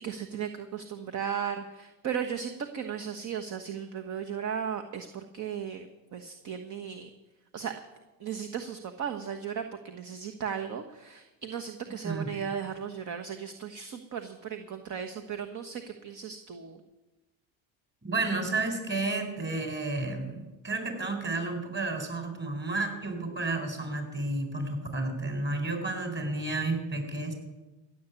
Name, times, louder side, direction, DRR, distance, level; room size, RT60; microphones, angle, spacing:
voice 1, 0.0-7.1 7.5-7.7 8.2-16.8, right 8 dB, 45° right, 6 dB, 1.3 m, -36 dB
voice 2, 18.0-27.3, right 2 dB, 25° right, 5 dB, 4.4 m, -31 dB
15.5 x 7.1 x 9.6 m, 1.1 s
supercardioid pair, 90°, 40 cm